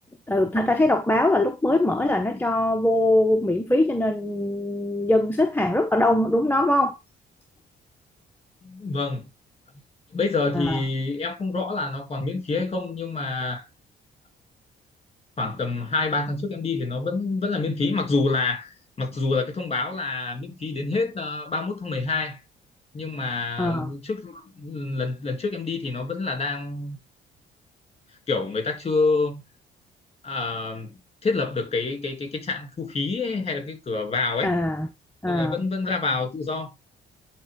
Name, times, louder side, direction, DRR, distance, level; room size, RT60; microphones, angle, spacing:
voice 1, 0.3-7.0 10.5-10.8 23.6-23.9 34.4-34.9 35.2-35.6, left 1 dB, 10° left, 0.9 m, -22 dB
voice 2, 8.6-9.3 10.1-13.7 15.4-22.4 22.9-27.0 28.3-29.4 30.2-34.5 35.3-36.7, left 3 dB, 30° left, 2.8 m, -27 dB
10.5 x 3.7 x 3.6 m
cardioid pair, 90°, 20 cm